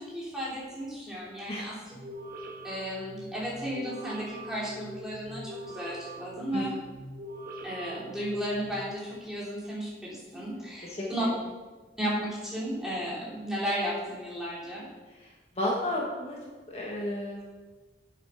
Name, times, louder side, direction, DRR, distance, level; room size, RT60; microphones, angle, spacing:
voice 1, 0.0-1.9 2.6-6.8 7.6-11.3 12.0-14.9, equal, 5° right, -7 dB, 3.1 m, -34 dB
sound 1, 1.9-8.8, right 1 dB, 50° right, 1.6 m, -43 dB
voice 2, 10.8-11.3 15.6-16.4 16.7-17.4, left 1 dB, 35° left, -3 dB, 1.6 m, -32 dB
8.5 x 8.2 x 5.8 m, 1.2 s
head